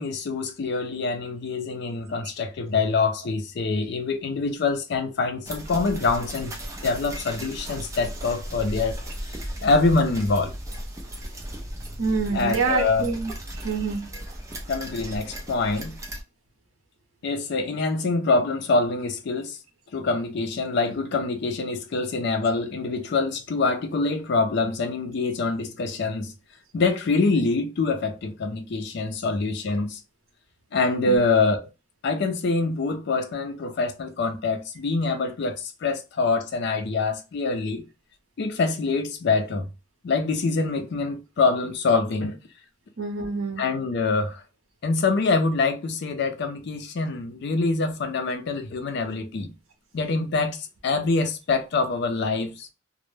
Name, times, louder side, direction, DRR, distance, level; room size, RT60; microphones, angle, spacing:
voice 1, 0.0-6.5 6.8-9.0 9.6-10.5 12.3-13.1 14.7-15.9 17.2-19.6 19.9-26.3 26.7-30.0 30.7-31.6 32.0-37.8 38.4-39.7 40.0-42.4 43.6-44.4 44.8-49.5 49.9-52.7, left 3 dB, 55° left, 0.4 m, -25 dB
sound 1, 5.4-16.2, right 1 dB, 15° right, 0.4 m, -36 dB
voice 2, 12.0-14.2 31.1-31.2 43.0-43.7, right 4 dB, 85° right, 0.7 m, -27 dB
2.1 x 2.0 x 3.1 m
head